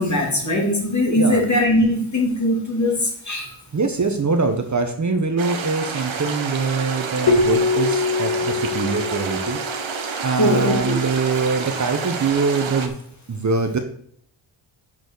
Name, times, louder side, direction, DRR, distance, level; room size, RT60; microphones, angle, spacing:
voice 1, 0.0-3.6 10.4-11.0, left 1 dB, 35° left, -1 dB, 2.8 m, -20 dB
voice 2, 3.7-9.6 10.2-12.9 13.3-13.8, right 4 dB, 35° right, 5 dB, 1.0 m, -23 dB
sound 1, 5.4-12.9, right 5 dB, 65° right, 1.3 m, -29 dB
Keyboard (musical), 7.3-10.1, left 3 dB, 55° left, 1.2 m, -22 dB
6.6 x 6.1 x 6.1 m, 0.65 s
wide cardioid pair, 100°, 50 cm